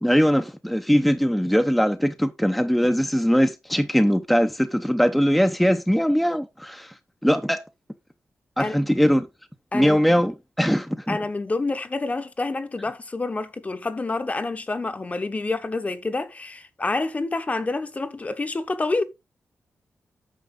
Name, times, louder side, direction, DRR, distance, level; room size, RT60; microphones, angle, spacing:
voice 1, 0.0-6.9 7.2-7.6 8.6-9.3 9.7-11.2, equal, ahead, 0.7 m, -21 dB
voice 2, 11.1-19.0, left 3 dB, 30° left, 1.0 m, -28 dB
9.2 x 6.2 x 3.7 m
wide cardioid pair, 110°, 5 cm